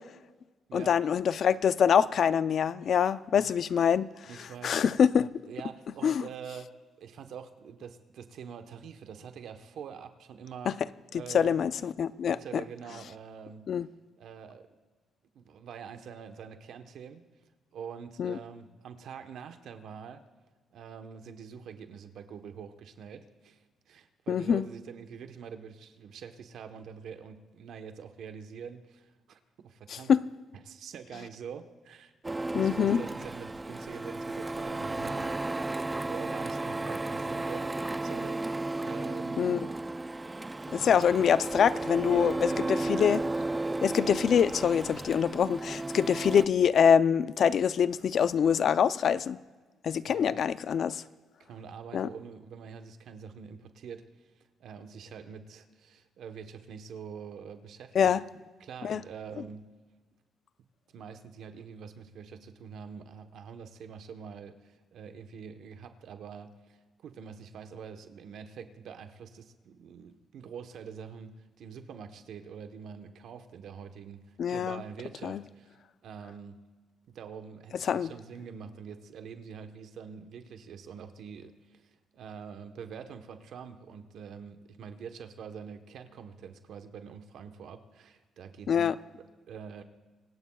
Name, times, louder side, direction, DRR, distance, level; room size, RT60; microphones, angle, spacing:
voice 1, 0.7-4.1 4.4-5.3 6.0-6.2 10.7-10.8 11.3-12.6 13.7-13.9 18.2-18.4 24.3-24.6 29.9-30.2 32.5-33.0 39.4-39.7 40.7-43.2 43.8-49.4 49.8-51.0 51.9-52.1 57.9-58.2 58.8-59.0 74.4-74.8 75.2-75.4 77.8-78.1 88.7-89.0, left 7 dB, 60° left, 15 dB, 0.5 m, -25 dB
voice 2, 2.8-3.5 4.2-4.8 5.5-6.7 7.0-10.7 11.1-11.6 12.3-13.6 14.2-14.7 15.3-17.3 17.7-20.2 20.7-30.1 30.6-35.6 36.0-39.4 40.7-41.0 41.9-42.9 50.0-50.4 51.4-58.1 58.6-59.6 60.9-75.8 76.0-76.6 77.1-89.8, right 7 dB, 70° right, 7 dB, 1.1 m, -45 dB
Printer, 32.2-46.5, right 2 dB, 15° right, 0.4 m, -34 dB
25.5 x 18.0 x 2.4 m, 1.3 s
cardioid pair, 90°, 0 cm